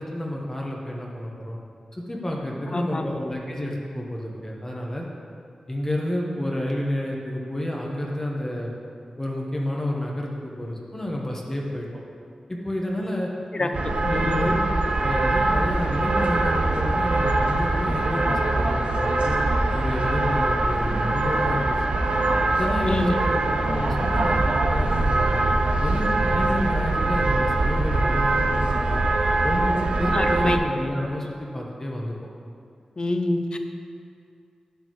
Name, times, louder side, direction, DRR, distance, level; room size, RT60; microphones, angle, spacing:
voice 1, 0.0-1.6 1.9-5.1 5.7-8.7 9.2-11.9 12.5-13.3 13.6-14.6 14.9-19.4 19.7-21.8 22.5-25.4 25.8-29.0 29.4-32.1, left 1 dB, 20° left, -2 dB, 1.1 m, -30 dB
voice 2, 2.7-3.2 13.5-14.5 22.9-23.2 30.1-30.6 33.0-33.6, left 2 dB, 45° left, 6 dB, 0.6 m, -27 dB
sound 1, 13.7-30.6, right 2 dB, 70° right, 0.6 m, -23 dB
10.0 x 6.7 x 3.1 m, 2.4 s
wide cardioid pair, 80°, 2 cm